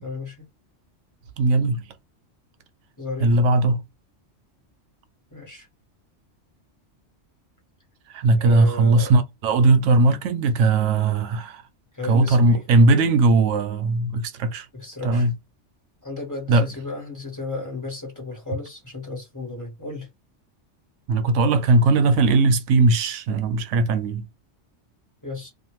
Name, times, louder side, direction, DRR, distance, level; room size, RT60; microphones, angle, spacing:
voice 1, 0.0-0.4 3.0-3.4 5.3-5.7 8.4-9.1 11.9-12.6 14.7-15.3 16.0-20.1 25.2-25.5, left 3 dB, 15° left, 1.1 m, -33 dB
voice 2, 1.4-1.8 3.2-3.8 8.1-11.6 12.0-14.7 15.0-15.3 16.5-16.6 21.1-24.2, right 2 dB, 85° right, 0.9 m, -19 dB
2.6 x 2.3 x 3.0 m
omnidirectional pair, 1.2 m